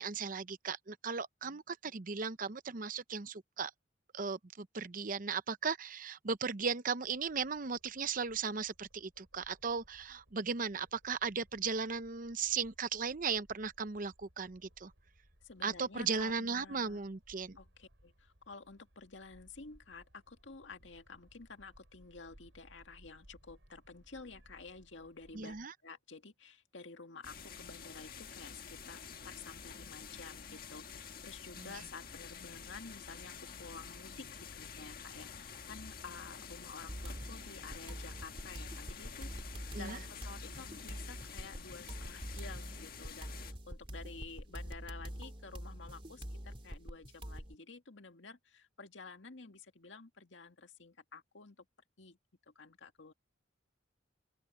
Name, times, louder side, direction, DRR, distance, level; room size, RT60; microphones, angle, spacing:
voice 1, 0.0-3.7 4.1-14.9 15.6-17.6 25.3-25.7 31.6-31.7 39.7-40.0, right 5 dB, 45° right, 0.7 m, -37 dB
sound 1, 7.1-25.7, equal, 80° right, 6.4 m, -65 dB
voice 2, 15.4-17.1 17.6-25.6 25.8-34.3 34.5-51.7 52.0-52.2 52.5-53.1, left 4 dB, 80° left, 2.0 m, -51 dB
sound 2, 27.2-43.5, left 6 dB, 55° left, 1.6 m, -49 dB
sound 3, 36.9-47.5, equal, 30° right, 2.9 m, -45 dB
open air
head